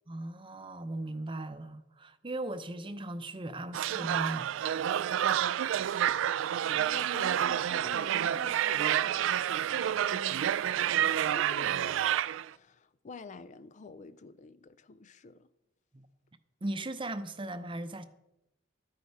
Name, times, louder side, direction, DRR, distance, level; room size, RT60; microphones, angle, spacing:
voice 1, 0.1-4.5 15.9-16.1 16.6-18.0, right 1 dB, 25° right, 0.7 m, -38 dB
sound 1, 3.7-12.5, right 10 dB, 70° right, 0.3 m, -29 dB
voice 2, 6.7-9.3 10.0-10.6 11.3-15.5, left 3 dB, 40° left, 0.4 m, -48 dB
13.0 x 9.6 x 4.7 m
head